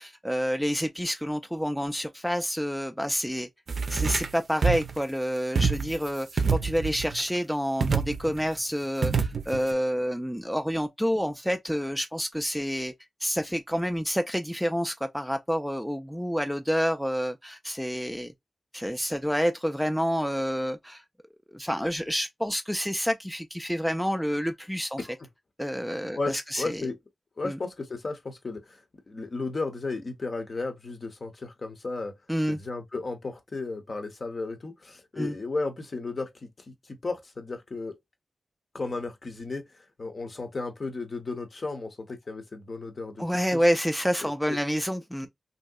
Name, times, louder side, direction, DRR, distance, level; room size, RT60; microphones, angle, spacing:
voice 1, 0.0-3.5 3.9-12.9 13.2-18.3 18.7-21.0 21.5-25.0 25.6-26.8 27.4-27.6 32.3-32.6 35.2-35.4 43.2-45.3, equal, ahead, 0.3 m, -28 dB
sound 1, 3.7-4.3 4.6-5.0 5.6-6.1 6.4-7.2 7.8-8.4 9.0-9.7, right 5 dB, 70° right, 0.5 m, -26 dB
voice 2, 26.1-27.0 27.4-32.1 32.5-38.0 38.7-43.2 43.5-43.6 44.2-44.6, left 3 dB, 45° left, 0.7 m, -34 dB
3.0 x 2.7 x 2.3 m
wide cardioid pair, 110°, 0 cm